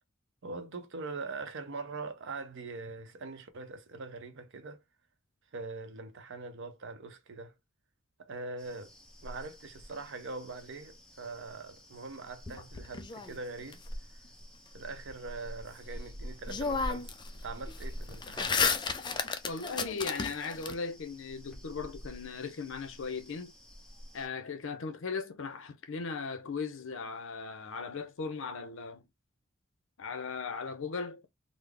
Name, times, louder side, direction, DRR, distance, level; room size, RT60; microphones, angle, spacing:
voice 1, 0.4-4.8 5.5-7.5 8.2-8.9 9.2-13.8 14.7-17.1 17.4-18.6, right 3 dB, 65° right, 0.7 m, -42 dB
sound 1, 8.6-24.3, equal, 5° left, 0.8 m, -47 dB
sound 2, 12.5-13.7 16.0-16.1 16.5-17.3 17.6-20.7, left 5 dB, 20° left, 0.3 m, -33 dB
voice 2, 19.5-23.5 24.1-29.0 30.0-31.3, left 5 dB, 65° left, 0.6 m, -38 dB
3.8 x 2.0 x 3.3 m
head